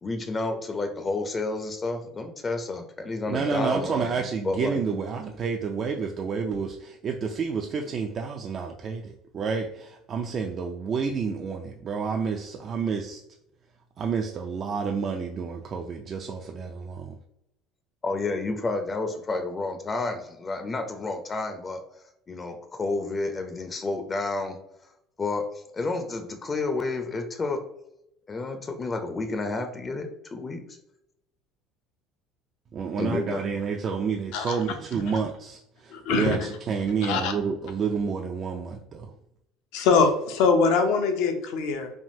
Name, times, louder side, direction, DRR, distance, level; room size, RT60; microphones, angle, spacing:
voice 1, 0.0-3.9 4.4-5.0 18.0-21.8 22.3-24.6 25.2-25.4 25.7-27.6 28.3-30.6 33.0-33.5, left 3 dB, 30° left, 6 dB, 0.5 m, -30 dB
voice 2, 3.3-13.2 14.0-17.2 32.7-39.1, right 5 dB, 45° right, 3 dB, 0.3 m, -29 dB
voice 3, 35.9-36.4 37.1-37.3 39.7-41.9, left 4 dB, 75° left, 5 dB, 0.6 m, -22 dB
3.4 x 2.3 x 2.6 m, 0.79 s
supercardioid pair, 80°, 0 cm